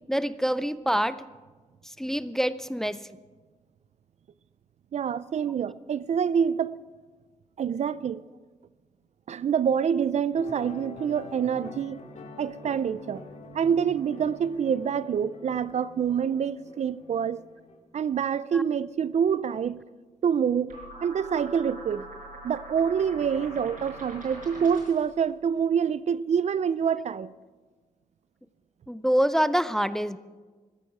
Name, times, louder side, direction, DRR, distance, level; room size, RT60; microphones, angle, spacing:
voice 1, 0.1-1.2 1.8-3.1 18.5-18.6 28.9-30.2, equal, 5° left, 0.4 m, -26 dB
voice 2, 4.9-6.8 7.6-8.2 9.3-12.0 12.4-13.2 13.5-17.4 17.9-19.8 20.2-22.1 22.4-27.3, right 7 dB, 55° right, 0.4 m, -26 dB
sound 1, 10.4-17.8, left 3 dB, 60° left, 2.0 m, -46 dB
sound 2, 20.7-25.1, right 1 dB, 85° right, 5.0 m, -43 dB
15.5 x 14.0 x 6.0 m
wide cardioid pair, 165°, 14 cm